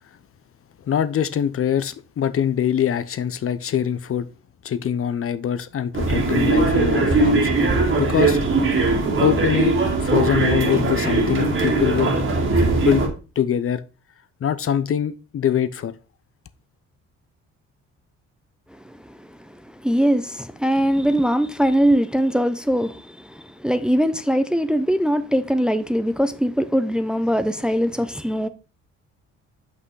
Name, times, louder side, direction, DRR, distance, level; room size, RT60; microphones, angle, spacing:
voice 1, 0.8-4.3 4.6-7.5 8.0-8.4 9.2-12.1 12.8-13.1 13.4-13.8 14.4-15.9, left 9 dB, 45° left, 0.7 m, -23 dB
sound 1, 5.9-13.1, right 3 dB, 45° right, 2.1 m, -20 dB
voice 2, 18.7-28.5, equal, 5° right, 0.6 m, -22 dB
6.0 x 5.6 x 4.7 m
cardioid pair, 90°, 30 cm